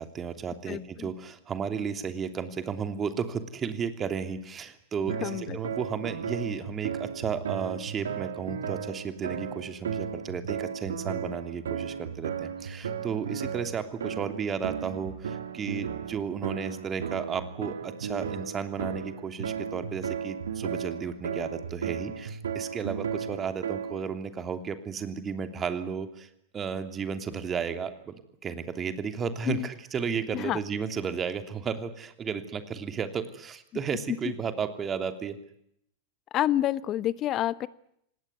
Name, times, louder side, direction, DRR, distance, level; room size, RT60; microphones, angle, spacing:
voice 1, 0.0-26.3 26.5-28.1 28.4-35.4, right 6 dB, 25° right, 8 dB, 3.0 m, -33 dB
voice 2, 0.7-1.1 5.2-5.6 29.5-29.7 30.3-30.6 36.3-37.7, left 13 dB, 40° left, 17 dB, 1.1 m, -28 dB
sound 1, 5.1-24.1, right 7 dB, 75° right, 2.6 m, -35 dB
27.5 x 18.5 x 9.6 m, 0.74 s
hypercardioid pair, 90°, 0 cm